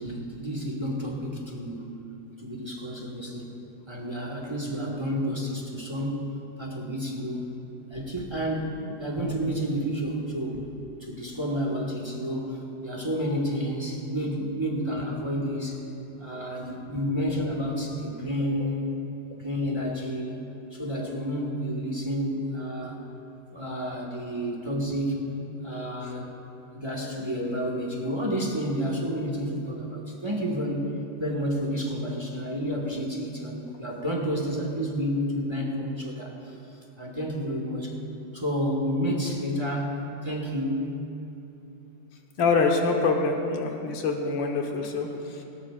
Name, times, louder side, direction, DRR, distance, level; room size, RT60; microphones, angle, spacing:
voice 1, 0.0-1.9 2.4-3.5 3.9-7.5 7.9-10.6 11.0-15.8 16.2-18.9 19.4-20.3 20.7-23.0 23.5-25.2 25.6-26.3 26.7-30.9 31.2-36.6 37.0-37.9 38.3-40.9, equal, 15° right, -2 dB, 1.5 m, -30 dB
voice 2, 42.4-45.4, left 4 dB, 85° left, 2 dB, 1.9 m, -25 dB
18.5 x 17.5 x 2.5 m, 2.8 s
omnidirectional pair, 2.0 m